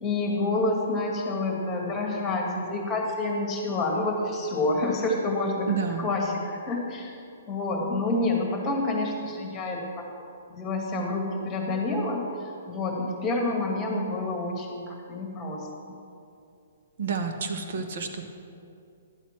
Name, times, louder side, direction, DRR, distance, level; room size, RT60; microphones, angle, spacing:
voice 1, 0.0-5.7 6.0-7.2 7.5-9.8 10.5-12.2 12.7-15.7, left 2 dB, 20° left, 1 dB, 1.9 m, -28 dB
voice 2, 5.7-6.1 17.0-18.3, right 5 dB, 55° right, 5 dB, 1.1 m, -30 dB
11.5 x 4.3 x 7.3 m, 2.5 s
figure-of-eight pair, 125°, 0 cm